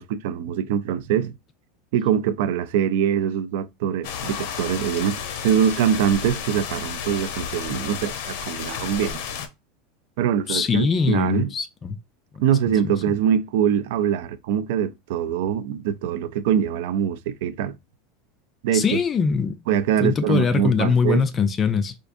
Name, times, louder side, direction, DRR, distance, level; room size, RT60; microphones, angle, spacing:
voice 1, 0.0-1.3 1.9-9.2 10.2-11.5 12.4-17.8 18.6-19.0 19.7-21.2, right 9 dB, 65° right, 0.4 m, -23 dB
sound 1, 4.0-9.5, left 7 dB, 60° left, 0.7 m, -32 dB
voice 2, 10.5-12.0 12.3-12.4 18.7-19.5 20.0-21.9, left 5 dB, 20° left, 0.4 m, -22 dB
4.5 x 2.5 x 2.5 m
supercardioid pair, 170°, 0 cm